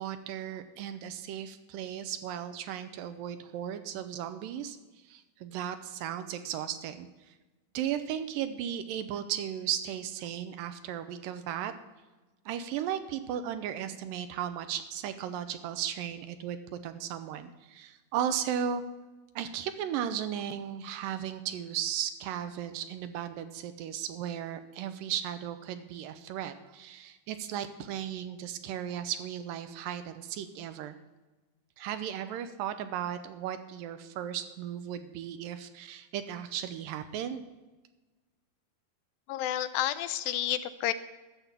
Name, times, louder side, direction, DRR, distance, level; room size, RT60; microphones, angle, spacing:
voice 1, 0.0-4.8 5.0-7.3 7.7-11.7 12.5-18.8 19.4-31.0 31.8-37.5, right 9 dB, 80° right, 10 dB, 2.2 m, -36 dB
voice 2, 39.3-40.9, left 13 dB, 80° left, 12 dB, 2.2 m, -30 dB
12.0 x 7.3 x 6.9 m, 1.2 s
omnidirectional pair, 4.1 m